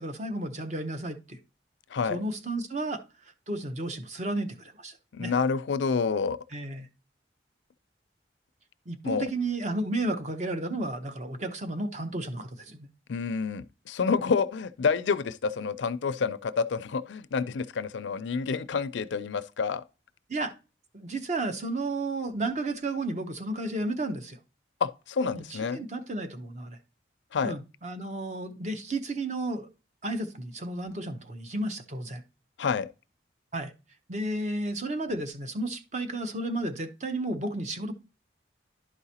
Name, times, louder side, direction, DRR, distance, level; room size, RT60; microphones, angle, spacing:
voice 1, 0.0-1.4 2.0-5.3 6.5-6.9 8.9-12.9 20.3-20.5 20.9-24.4 25.3-26.8 27.4-29.7 30.0-32.2 33.5-33.7 34.1-37.9, right 2 dB, 40° right, 0.8 m, -33 dB
voice 2, 1.9-2.2 5.1-6.4 9.0-9.3 13.1-19.8 24.8-25.8 27.3-27.5 32.6-32.9, left 5 dB, 75° left, 0.4 m, -28 dB
11.0 x 4.8 x 2.8 m
head